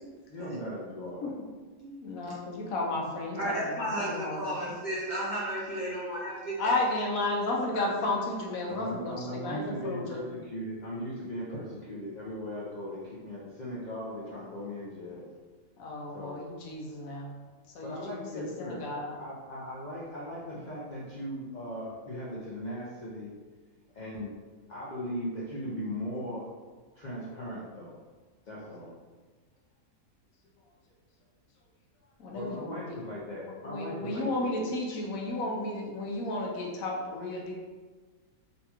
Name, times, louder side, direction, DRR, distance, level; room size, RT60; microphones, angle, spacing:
voice 1, 0.3-1.3 8.6-15.2 16.1-16.4 17.8-23.3 23.9-24.3 24.7-26.5 27.0-27.9 28.5-28.9 32.3-34.7, equal, 55° left, -7 dB, 0.4 m, -38 dB
voice 2, 2.0-4.7 6.6-10.3 15.8-17.3 17.7-19.2 32.2-32.8 33.7-37.5, left 2 dB, 75° left, -1 dB, 1.0 m, -33 dB
voice 3, 3.4-6.8 7.7-7.8, right 1 dB, 40° right, -8 dB, 0.8 m, -33 dB
4.0 x 2.3 x 2.8 m, 1.4 s
omnidirectional pair, 1.5 m